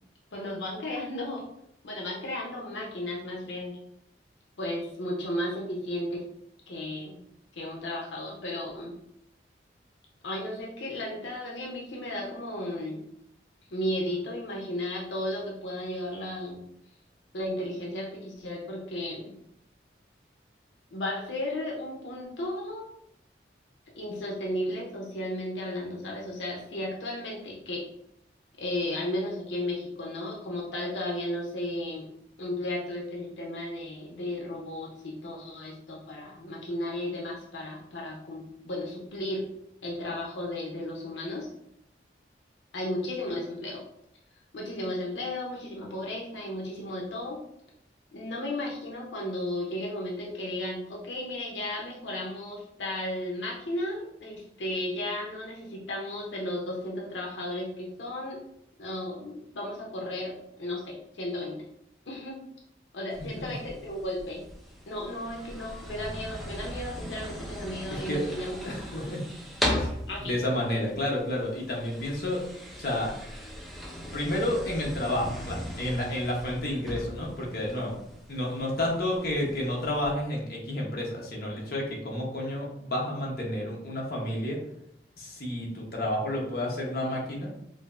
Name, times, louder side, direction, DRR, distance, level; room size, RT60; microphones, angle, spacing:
voice 1, 0.3-1.4 1.8-3.8 4.6-6.2 6.7-7.2 7.5-8.9 10.2-13.0 13.7-16.7 17.3-19.3 20.9-22.9 24.0-27.9 28.6-32.1 32.4-39.4 39.8-41.5 42.7-43.8 44.5-47.4 48.1-58.4 58.8-61.6 62.1-62.3 62.9-64.4 64.9-68.6 68.9-69.1 70.1-70.3, left 1 dB, 85° left, -2 dB, 0.7 m, -34 dB
sound 1, 63.1-80.1, equal, ahead, 0.5 m, -38 dB
voice 2, 67.9-69.2 69.7-70.0 70.3-72.4 72.8-73.1 74.1-77.9 78.3-84.6 85.2-87.5, left 1 dB, 55° left, -2 dB, 0.9 m, -30 dB
4.8 x 2.0 x 2.5 m, 0.75 s
head